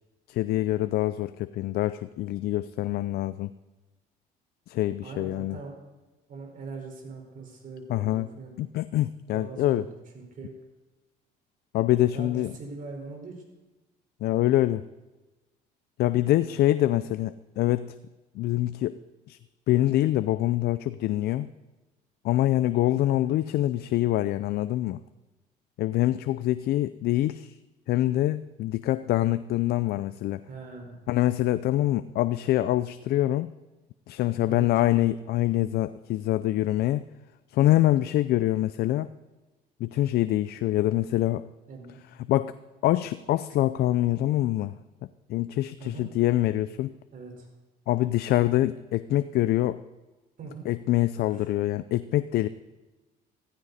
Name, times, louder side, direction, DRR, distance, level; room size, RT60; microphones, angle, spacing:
voice 1, 0.3-3.5 4.7-5.6 7.9-8.3 8.6-9.8 11.7-12.5 14.2-14.8 16.0-17.9 18.4-19.0 19.3-19.4 19.7-21.5 22.2-25.0 25.8-27.6 27.9-30.4 31.1-33.5 34.1-37.0 37.5-39.1 39.8-41.5 42.3-42.5 42.8-44.8 45.3-46.9 47.9-49.8 50.7-52.5, left 14 dB, 70° left, 14 dB, 0.5 m, -25 dB
voice 2, 5.0-5.7 6.3-8.5 9.3-9.9 10.1-10.5 12.1-13.4 16.3-16.5 23.1-23.3 30.5-31.0 34.5-34.7 41.7-42.0 45.8-46.0 47.1-47.5 50.4-50.7 51.2-51.5, right 4 dB, 55° right, 1 dB, 4.8 m, -41 dB
15.0 x 14.5 x 4.2 m, 1.1 s
cardioid pair, 110°, 17 cm